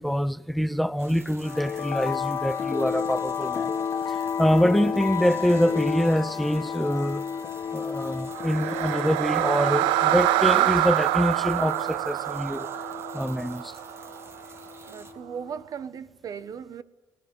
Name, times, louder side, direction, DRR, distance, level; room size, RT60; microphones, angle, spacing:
voice 1, 0.0-3.7 4.1-7.2 7.7-12.7 13.1-13.7, equal, ahead, 0.7 m, -25 dB
sound 1, 1.0-15.1, right 3 dB, 30° right, 2.7 m, -50 dB
sound 2, 1.4-15.5, left 6 dB, 45° left, 1.7 m, -32 dB
sound 3, 8.3-14.4, right 16 dB, 85° right, 0.6 m, -25 dB
voice 2, 14.8-16.8, right 7 dB, 45° right, 1.1 m, -37 dB
20.0 x 19.5 x 10.0 m
cardioid pair, 105°, 8 cm